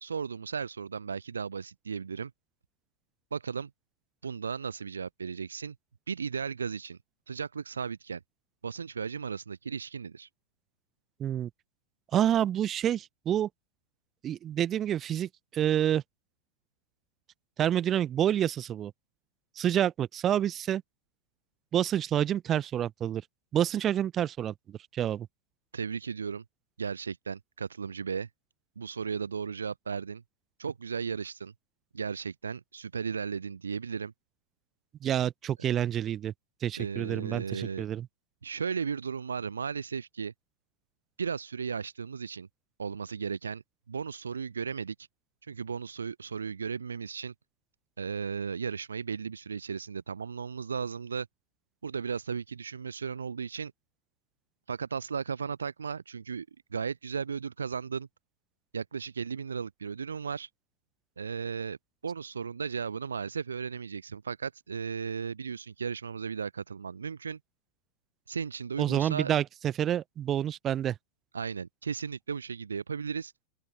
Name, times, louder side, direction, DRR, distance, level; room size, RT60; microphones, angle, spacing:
voice 1, 0.0-2.3 3.3-3.7 4.2-5.8 6.1-7.0 7.3-8.2 8.6-10.3 25.7-26.4 26.8-28.3 28.8-30.2 30.6-31.5 31.9-34.1 36.8-37.9 38.4-40.3 41.2-42.5 42.8-44.9 45.5-47.3 48.0-51.3 51.8-53.7 54.7-56.5 56.7-58.1 58.7-60.5 61.2-61.8 62.0-67.4 68.3-69.3 71.3-73.3, right 6 dB, 70° right, 0.6 m, -35 dB
voice 2, 12.1-13.5 14.2-16.0 17.6-18.9 19.6-20.8 21.7-23.2 23.5-25.3 35.0-36.3 36.6-38.1 68.8-70.9, right 10 dB, 30° right, 0.9 m, -28 dB
open air
figure-of-eight pair, 90°, 0 cm